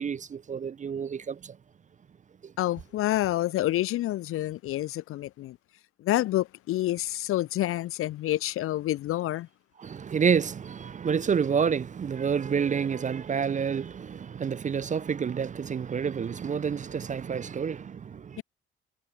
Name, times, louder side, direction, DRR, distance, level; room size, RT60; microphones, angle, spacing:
voice 1, 0.0-1.6 2.4-2.5 9.8-18.4, right 7 dB, 25° right, 0.5 m, -29 dB
voice 2, 2.6-5.6 6.0-9.5 18.4-18.5, left 15 dB, 50° left, 0.5 m, -28 dB
figure-of-eight pair, 45°, 29 cm